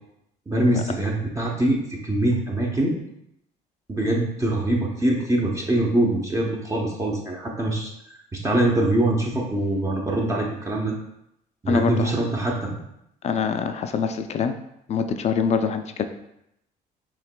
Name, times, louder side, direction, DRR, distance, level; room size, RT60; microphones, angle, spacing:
voice 1, 0.5-3.0 3.9-7.9 8.3-10.9 11.6-12.7, right 1 dB, 20° right, -2 dB, 0.7 m, -23 dB
voice 2, 11.7-12.1 13.2-14.6 14.9-16.0, left 6 dB, 40° left, 8 dB, 0.4 m, -24 dB
5.7 x 3.1 x 2.2 m, 0.79 s
cardioid pair, 110°, 17 cm